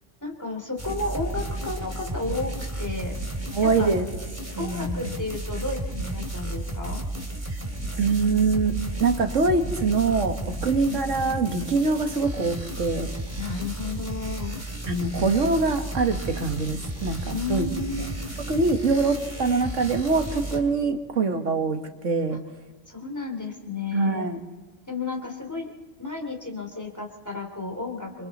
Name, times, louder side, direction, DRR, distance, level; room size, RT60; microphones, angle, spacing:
voice 1, 0.2-3.2 3.6-3.9 4.6-7.0 10.9-11.0 13.3-14.6 17.0-18.2 22.9-24.3 24.9-25.7 26.0-28.3, left 3 dB, 15° left, 0 dB, 2.9 m, -32 dB
sound 1, 0.8-20.6, right 1 dB, 10° right, 3.2 m, -33 dB
voice 2, 3.5-4.1 4.6-5.0 8.0-13.1 14.9-17.7 18.5-22.4 23.9-24.4, right 4 dB, 75° right, 6 dB, 1.8 m, -24 dB
27.5 x 25.5 x 4.2 m, 1.3 s
omnidirectional pair, 1.3 m